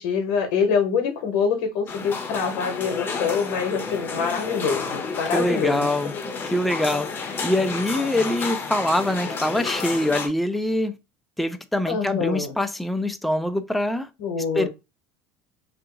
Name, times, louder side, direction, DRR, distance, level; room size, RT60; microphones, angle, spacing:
voice 1, 0.0-5.8 6.2-6.3 11.9-12.5 14.2-14.7, left 6 dB, 75° left, 0.8 m, -25 dB
sound 1, 1.9-10.3, left 5 dB, 25° left, 0.8 m, -31 dB
voice 2, 5.3-6.1 6.5-11.0 11.4-14.1 14.5-14.7, left 1 dB, ahead, 0.3 m, -24 dB
2.7 x 2.5 x 3.7 m
supercardioid pair, 120°, 8 cm